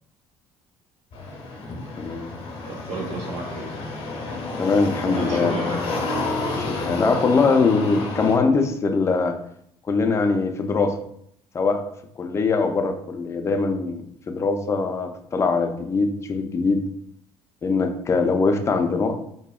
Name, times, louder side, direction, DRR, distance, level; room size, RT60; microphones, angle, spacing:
sound 1, 1.1-8.4, left 3 dB, 60° left, 0.6 m, -30 dB
voice 1, 2.0-2.3 4.6-5.5 6.5-9.4 9.9-11.0 11.5-11.8 12.2-16.8 17.6-19.2, left 4 dB, 25° left, 5 dB, 0.3 m, -22 dB
voice 2, 2.7-3.7 5.0-6.0, right 2 dB, 75° right, -1 dB, 0.8 m, -32 dB
2.7 x 2.0 x 2.3 m, 0.70 s
supercardioid pair, 85°, 11 cm